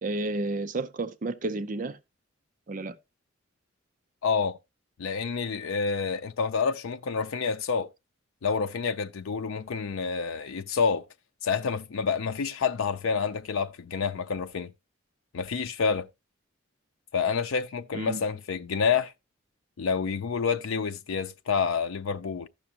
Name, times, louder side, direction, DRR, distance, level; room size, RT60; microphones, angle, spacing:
voice 1, 0.0-2.0 2.7-3.0 17.9-18.2, right 2 dB, 40° right, 0.5 m, -31 dB
voice 2, 4.2-4.6 5.0-7.9 8.4-11.1 11.4-14.7 15.3-16.1 17.1-19.1 19.8-22.5, left 5 dB, 90° left, 0.5 m, -28 dB
14.5 x 6.0 x 2.8 m
head